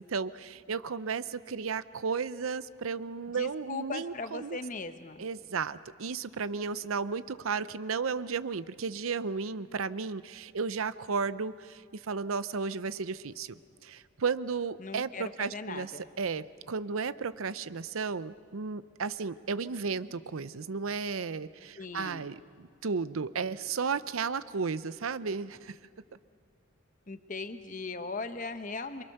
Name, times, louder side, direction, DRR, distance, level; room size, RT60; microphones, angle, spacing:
voice 1, 0.0-4.6 5.2-13.5 13.8-15.9 16.2-25.8, right 5 dB, 80° right, 15 dB, 0.7 m, -34 dB
voice 2, 3.3-5.2 14.8-16.1 21.8-22.2 27.1-29.0, left 3 dB, 40° left, 9 dB, 1.0 m, -39 dB
27.5 x 23.5 x 6.7 m, 2.2 s
head